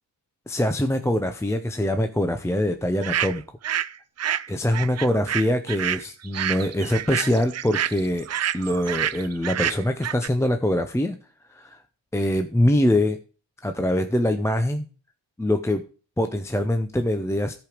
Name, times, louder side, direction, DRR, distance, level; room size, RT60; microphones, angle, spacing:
voice 1, 0.5-3.4 4.5-8.3 8.5-11.2 11.5-11.8 12.1-13.2 13.6-14.8 15.4-15.8 16.2-17.5, left 1 dB, 5° left, 7 dB, 0.7 m, -23 dB
sound 1, 3.0-3.9 4.2-10.3, right 10 dB, 35° right, 0.4 m, -28 dB
13.5 x 5.2 x 5.0 m, 0.37 s
cardioid pair, 110°, 46 cm